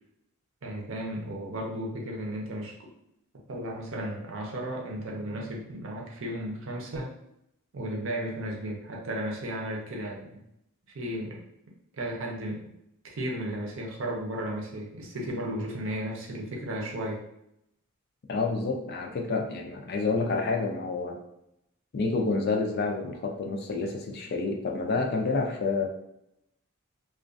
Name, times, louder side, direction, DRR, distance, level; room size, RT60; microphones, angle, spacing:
voice 1, 0.6-2.7 3.5-7.1 7.7-10.4 10.9-11.4 11.9-12.6 13.2-17.2, right 1 dB, 65° right, -1 dB, 0.6 m, -34 dB
voice 2, 18.3-21.2 21.9-25.9, left 3 dB, 50° left, 3 dB, 0.4 m, -28 dB
2.3 x 2.3 x 2.4 m, 0.79 s
head